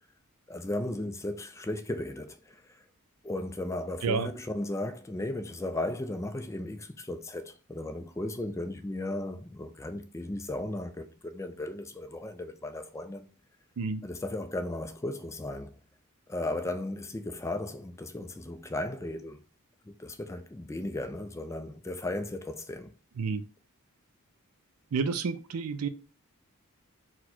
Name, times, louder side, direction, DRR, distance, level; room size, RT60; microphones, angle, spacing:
voice 1, 0.5-2.8 3.2-13.3 14.0-15.8 16.3-19.4 19.9-22.9, left 1 dB, 15° left, 0.4 m, -36 dB
voice 2, 4.0-4.3 13.8-14.0 23.2-23.4 24.9-25.9, right 5 dB, 80° right, 0.4 m, -30 dB
4.2 x 2.2 x 4.3 m
head